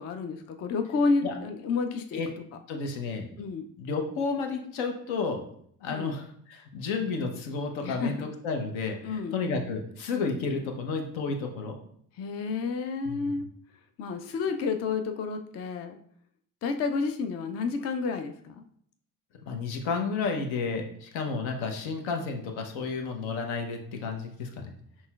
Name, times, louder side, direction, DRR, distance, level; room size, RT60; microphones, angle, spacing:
voice 1, 0.0-2.2 3.4-3.6 5.9-6.2 7.8-8.3 9.0-9.4 12.2-13.4 14.0-16.0 16.6-18.6, left 4 dB, 35° left, 7 dB, 0.4 m, -30 dB
voice 2, 2.7-3.3 3.8-5.4 5.8-11.8 13.1-13.3 19.4-24.7, left 4 dB, 65° left, 4 dB, 0.8 m, -32 dB
5.4 x 3.0 x 2.3 m, 0.65 s
hypercardioid pair, 45°, 50 cm